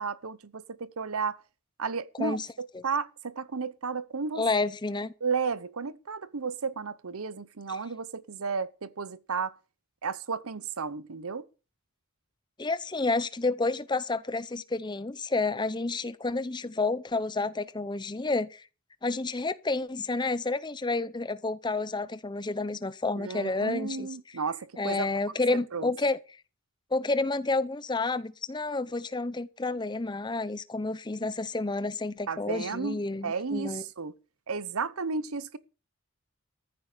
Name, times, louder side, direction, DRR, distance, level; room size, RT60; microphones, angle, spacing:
voice 1, 0.0-1.4 1.8-4.4 5.2-9.5 10.0-11.4 23.2-25.1 25.5-25.9 32.3-34.1 34.5-35.6, right 5 dB, 80° right, 0.8 m, -33 dB
voice 2, 4.4-5.1 12.6-18.6 19.0-24.1 24.8-26.2 26.9-33.8, left 3 dB, 20° left, 0.6 m, -30 dB
14.0 x 11.5 x 5.1 m
head